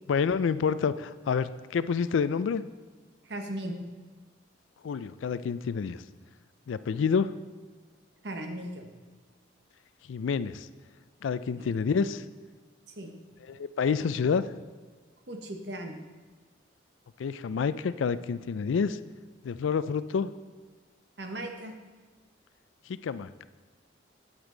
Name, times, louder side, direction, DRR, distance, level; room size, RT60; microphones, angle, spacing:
voice 1, 0.1-2.6 4.8-6.0 6.7-7.3 10.1-10.7 11.2-12.2 13.5-14.4 17.2-19.0 19.4-20.3 22.9-23.5, left 6 dB, 90° left, 15 dB, 0.4 m, -28 dB
voice 2, 3.2-3.8 8.2-8.9 11.6-11.8 12.9-13.1 15.3-16.0 21.2-21.7, right 1 dB, 60° right, 4 dB, 1.0 m, -37 dB
9.0 x 8.0 x 3.8 m, 1.4 s
head